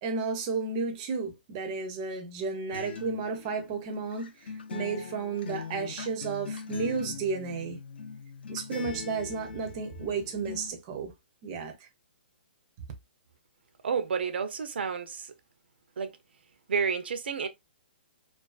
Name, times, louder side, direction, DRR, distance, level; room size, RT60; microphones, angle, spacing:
voice 1, 0.0-7.8 8.5-11.1 11.4-11.7, right 4 dB, 25° right, 0.5 m, -33 dB
Acoustic guitar, 2.7-10.7, left 6 dB, 80° left, 0.6 m, -41 dB
voice 2, 13.8-15.3 16.0-16.2 16.7-17.5, right 6 dB, 85° right, 0.5 m, -30 dB
2.4 x 2.3 x 2.3 m
hypercardioid pair, 170°, 6 cm